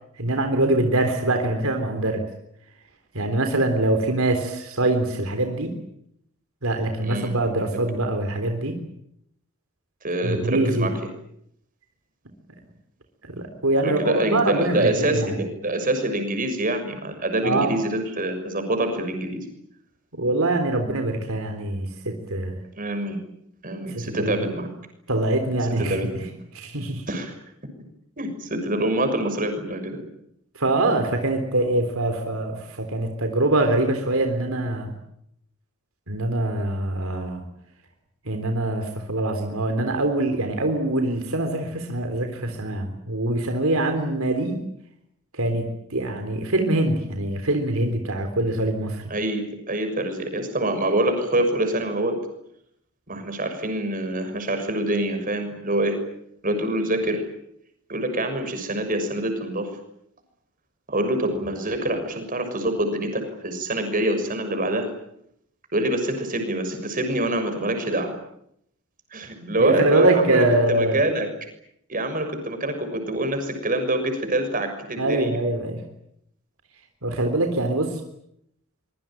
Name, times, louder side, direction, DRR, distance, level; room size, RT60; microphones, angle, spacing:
voice 1, 0.2-2.2 3.1-5.7 6.6-8.8 10.2-10.9 13.2-15.4 17.4-17.8 20.1-22.6 23.9-24.5 25.1-26.3 26.5-27.0 30.6-34.9 36.1-37.4 38.3-44.6 45.3-49.1 69.4-71.0 75.0-75.8 77.0-78.0, right 2 dB, 70° right, 6 dB, 3.8 m, -24 dB
voice 2, 7.0-7.3 10.0-10.9 13.8-19.4 22.8-23.2 23.6-24.7 25.8-26.1 27.1-27.3 28.2-30.1 49.1-52.2 53.1-56.0 56.4-57.3 57.9-59.7 60.9-64.9 65.7-68.1 69.1-71.3 71.9-75.4, right 1 dB, 40° right, 6 dB, 6.4 m, -25 dB
25.0 x 23.5 x 9.0 m, 0.74 s
head